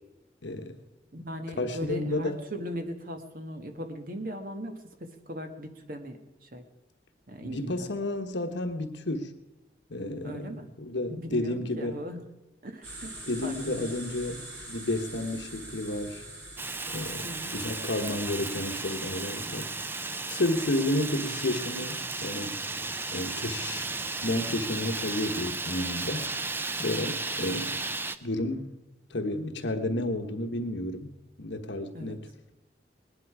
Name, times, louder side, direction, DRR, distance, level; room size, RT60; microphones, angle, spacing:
voice 1, 0.4-0.8 1.6-2.4 7.4-9.3 9.9-12.0 13.3-16.2 16.9-17.3 17.5-19.7 20.1-22.6 23.1-23.9 24.2-26.3 26.8-27.8 28.2-28.7 29.1-31.1 31.4-32.3, left 1 dB, 75° left, 7 dB, 1.3 m, -31 dB
voice 2, 1.1-6.6 7.3-7.9 10.2-10.7 11.1-12.3 12.6-13.1 13.4-14.0 17.2-17.5 27.4-27.6 31.9-32.2, equal, 50° right, 6 dB, 1.4 m, -39 dB
sound 1, 12.8-19.7, right 1 dB, 85° right, 6.1 m, -45 dB
Fire, 16.6-28.2, right 3 dB, 10° right, 0.4 m, -34 dB
19.5 x 10.5 x 4.8 m, 1.1 s
head